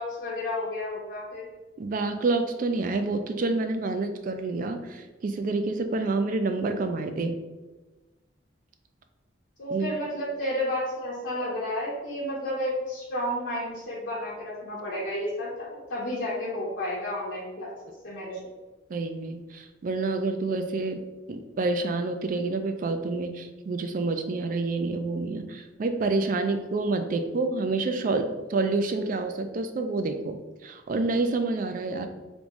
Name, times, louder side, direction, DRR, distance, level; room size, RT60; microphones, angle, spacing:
voice 1, 0.0-1.5 9.6-17.7 18.0-18.4, left 1 dB, 70° left, -7 dB, 0.7 m, -31 dB
voice 2, 1.8-7.3 9.7-9.9 18.9-21.0 21.3-28.2 28.5-32.1, right 3 dB, 45° right, 7 dB, 0.3 m, -28 dB
3.5 x 2.6 x 3.0 m, 1.2 s
head